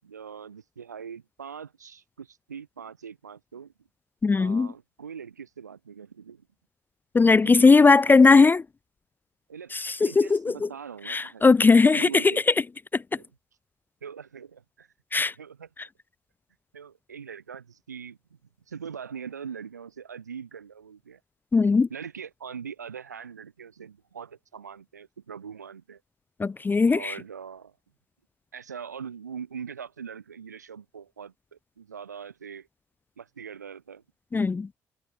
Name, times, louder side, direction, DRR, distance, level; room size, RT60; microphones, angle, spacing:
voice 1, 0.0-3.7 4.4-6.5 7.4-8.5 9.5-11.4 11.9-12.4 14.0-14.9 15.2-15.7 16.7-18.4 18.7-21.2 21.9-26.0 26.9-27.7 28.5-32.7 33.2-34.0, right 7 dB, 90° right, 7.8 m, -42 dB
voice 2, 4.2-4.7 7.1-8.6 9.7-10.7 11.1-12.3 12.9-13.0 15.1-15.3 21.5-21.9 26.4-27.2 34.3-34.7, left 4 dB, 20° left, 0.4 m, -19 dB
figure-of-eight pair, 45°, 9 cm